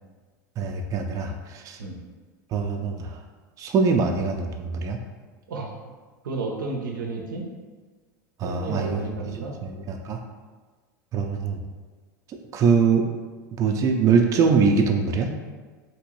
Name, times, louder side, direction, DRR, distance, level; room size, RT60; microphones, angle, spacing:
voice 1, 0.6-1.8 2.5-3.2 3.6-5.0 8.4-10.2 11.1-11.6 12.5-13.1 13.6-15.4, right 5 dB, 35° right, 3 dB, 0.3 m, -23 dB
voice 2, 6.2-7.5 8.4-9.6, right 3 dB, 85° right, 1 dB, 0.5 m, -32 dB
2.9 x 2.6 x 3.0 m, 1.4 s
hypercardioid pair, 100°, 10 cm